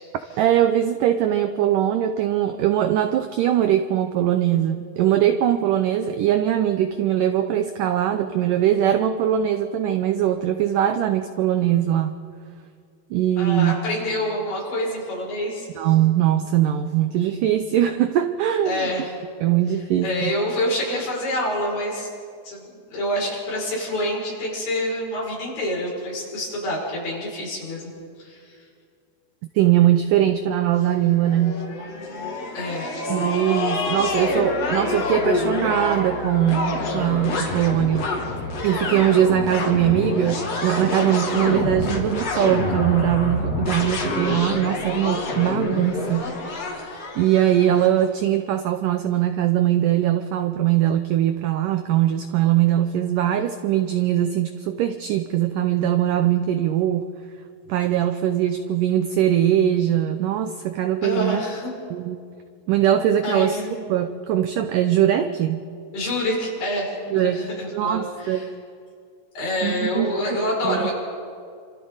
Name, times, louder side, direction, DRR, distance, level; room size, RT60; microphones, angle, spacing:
voice 1, 0.4-12.1 13.1-13.8 15.8-18.9 19.4-20.3 29.6-31.6 33.1-38.2 38.6-46.4 46.7-46.8 47.2-57.1 57.7-61.4 61.9-62.2 62.7-65.6 67.1-68.6 69.6-70.9, right 11 dB, 85° right, 8 dB, 1.8 m, -21 dB
voice 2, 13.4-15.7 18.6-19.1 20.0-22.1 22.4-27.9 28.2-28.6 32.5-32.9 41.3-41.6 61.0-61.7 63.2-63.7 65.9-68.5 69.4-70.9, left 1 dB, 75° left, -4 dB, 7.9 m, -27 dB
sound 1, 30.8-47.9, left 2 dB, 45° left, 3.0 m, -27 dB
29.0 x 26.5 x 4.0 m, 2.2 s
omnidirectional pair, 4.7 m